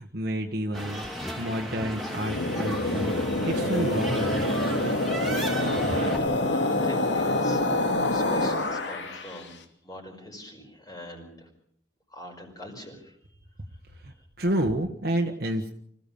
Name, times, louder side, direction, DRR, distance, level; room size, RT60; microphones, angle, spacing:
voice 1, 0.0-4.5 13.9-15.7, right 1 dB, 60° right, 3 dB, 1.5 m, -30 dB
sound 1, 0.7-6.2, equal, ahead, 3.8 m, -35 dB
sound 2, 2.0-9.4, left 2 dB, 90° left, 2.6 m, -27 dB
Bowed string instrument, 3.4-8.3, right 1 dB, 70° left, 4.0 m, -37 dB
voice 2, 5.3-6.1 6.5-7.7 8.0-9.5 9.8-11.5 12.1-13.4 14.1-14.3, equal, 20° left, 1 dB, 4.9 m, -42 dB
25.5 x 15.5 x 7.0 m, 0.67 s
head